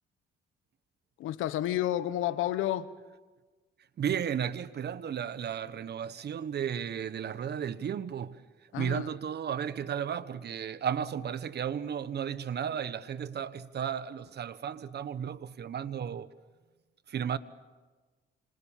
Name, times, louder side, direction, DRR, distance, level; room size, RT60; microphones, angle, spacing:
voice 1, 1.2-2.9 8.7-9.1, left 13 dB, 90° left, 1.1 m, -30 dB
voice 2, 4.0-8.4 8.7-16.3 17.1-17.4, right 8 dB, 55° right, 1.3 m, -34 dB
26.5 x 26.5 x 7.4 m
cardioid pair, 90°, 20 cm